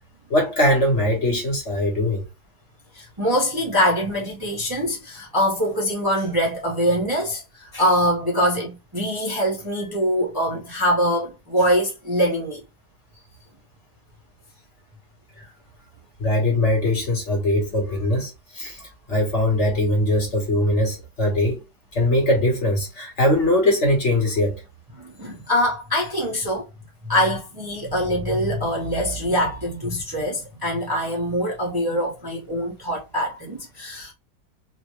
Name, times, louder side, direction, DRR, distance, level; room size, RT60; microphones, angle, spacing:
voice 1, 0.3-2.2 15.4-15.5 16.2-18.8 19.1-21.6 21.9-24.6, left 1 dB, 45° left, 1.5 m, -21 dB
voice 2, 2.9-12.6 25.0-26.7 27.0-34.1, equal, 15° right, 1.0 m, -23 dB
4.0 x 2.5 x 3.0 m
omnidirectional pair, 1.8 m